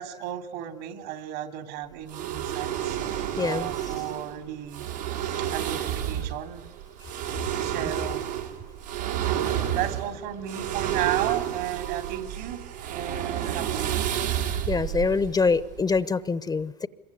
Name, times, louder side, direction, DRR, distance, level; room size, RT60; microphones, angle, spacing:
voice 1, 0.0-3.0 3.4-6.7 7.3-8.3 9.7-12.6 12.9-14.1, right 11 dB, 70° right, 6 dB, 3.1 m, -34 dB
sound 1, 2.1-16.0, right 10 dB, 85° right, 3.4 m, -30 dB
voice 2, 3.4-3.7 7.3-7.4 14.7-16.9, left 4 dB, 20° left, 15 dB, 0.9 m, -25 dB
26.0 x 23.0 x 9.8 m, 1.1 s
hypercardioid pair, 85°, 21 cm